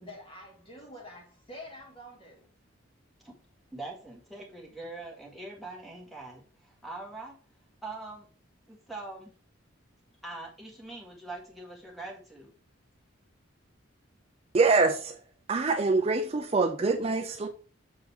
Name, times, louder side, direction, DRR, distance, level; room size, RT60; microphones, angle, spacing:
voice 1, 0.0-2.5, left 1 dB, 25° left, 2.0 m, -47 dB
voice 2, 3.7-7.4 7.8-8.3 8.7-9.3 10.2-12.5, right 2 dB, ahead, 1.5 m, -42 dB
voice 3, 14.5-15.2 15.5-17.5, right 3 dB, 30° right, 0.4 m, -25 dB
7.0 x 3.9 x 4.2 m
head